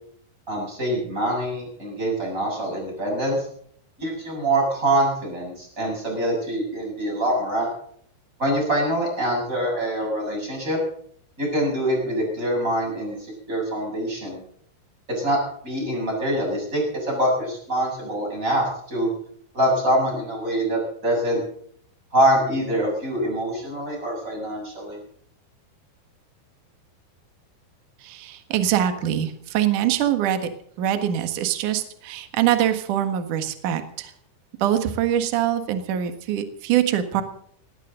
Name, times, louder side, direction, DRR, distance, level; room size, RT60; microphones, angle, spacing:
voice 1, 0.5-3.5 4.0-7.7 8.4-10.8 11.4-14.4 15.2-15.4 15.6-19.1 19.5-21.4 22.1-25.0, right 1 dB, 15° right, -1 dB, 7.4 m, -24 dB
voice 2, 28.0-30.5 30.8-34.1 34.6-37.2, right 11 dB, 60° right, 8 dB, 2.3 m, -23 dB
18.5 x 18.0 x 3.9 m, 0.63 s
omnidirectional pair, 5.8 m